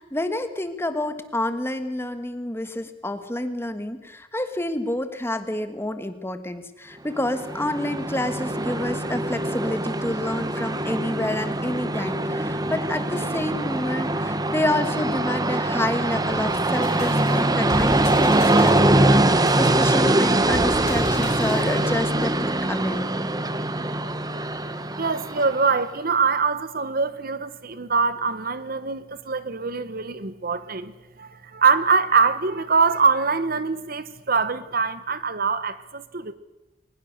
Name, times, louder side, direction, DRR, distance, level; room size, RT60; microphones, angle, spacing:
voice 1, 0.0-23.1, left 1 dB, 15° left, 10 dB, 1.4 m, -28 dB
Train, 7.2-25.8, right 1 dB, 20° right, 1.1 m, -23 dB
sound 1, 16.3-21.9, left 1 dB, 40° left, 2.6 m, -35 dB
voice 2, 25.0-30.9 31.2-36.3, right 5 dB, 55° right, 14 dB, 1.1 m, -23 dB
22.0 x 20.0 x 6.7 m, 0.99 s
head